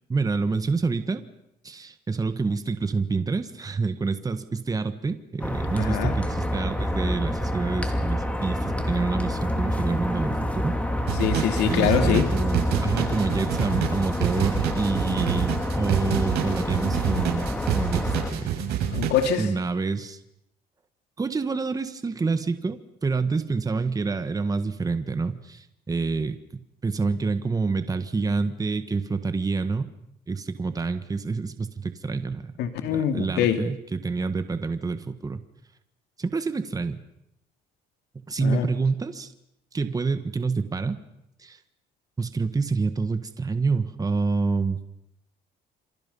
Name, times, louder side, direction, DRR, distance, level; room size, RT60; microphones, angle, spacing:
voice 1, 0.1-1.2 1.6-10.7 11.7-17.5 17.8-18.6 19.4-20.2 21.2-29.9 30.3-32.5 32.9-35.4 36.2-37.0 38.1-39.3 39.7-41.0 41.4-41.6 42.2-44.8, right 4 dB, 20° right, 10 dB, 1.5 m, -27 dB
sound 1, 5.4-18.3, left 1 dB, 10° left, 2.8 m, -28 dB
voice 2, 5.8-6.2 11.2-12.3 18.9-19.5 32.6-33.6 38.4-38.7, left 9 dB, 85° left, 7 dB, 2.7 m, -24 dB
sound 2, 11.1-19.4, right 9 dB, 75° right, 6.8 m, -27 dB
27.5 x 26.5 x 5.5 m, 0.78 s
cardioid pair, 110°, 17 cm